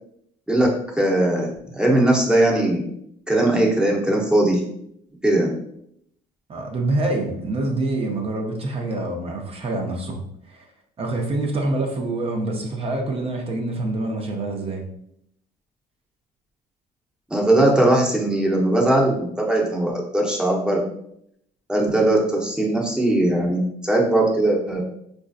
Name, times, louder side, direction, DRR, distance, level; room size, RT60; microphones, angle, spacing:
voice 1, 0.5-2.8 3.3-4.6 5.2-5.5 17.3-20.8 21.7-24.8, right 1 dB, 5° right, -2 dB, 0.8 m, -19 dB
voice 2, 6.5-10.2 10.5-10.6 11.0-14.8, right 2 dB, 35° right, 1 dB, 0.6 m, -26 dB
4.2 x 2.6 x 2.4 m, 0.73 s
cardioid pair, 110°, 17 cm